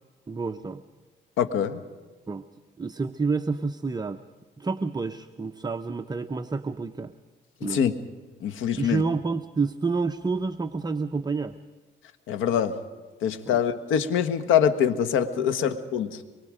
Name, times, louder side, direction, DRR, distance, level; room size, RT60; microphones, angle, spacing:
voice 1, 0.3-0.8 2.3-2.4 2.8-4.2 4.6-7.1 7.6-7.8 8.8-11.5 13.5-13.6 15.6-15.7, right 4 dB, 20° right, 7 dB, 0.8 m, -29 dB
voice 2, 1.4-1.8 7.6-7.9 8.4-9.0 12.3-12.8 13.2-16.2, left 8 dB, 90° left, 11 dB, 1.4 m, -24 dB
24.5 x 23.0 x 5.1 m, 1.3 s
cardioid pair, 90°, 20 cm